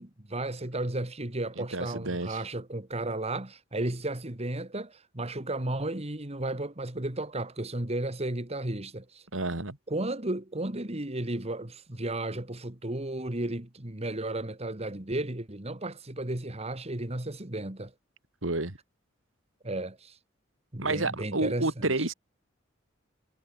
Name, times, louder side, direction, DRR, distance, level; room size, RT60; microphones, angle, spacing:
voice 1, 0.0-9.3 9.9-17.9 19.6-20.2 20.7-22.1, right 1 dB, 30° right, 2.2 m, -34 dB
voice 2, 1.6-2.4 9.3-9.8 18.4-18.8 20.8-22.1, right 2 dB, 75° right, 3.2 m, -30 dB
head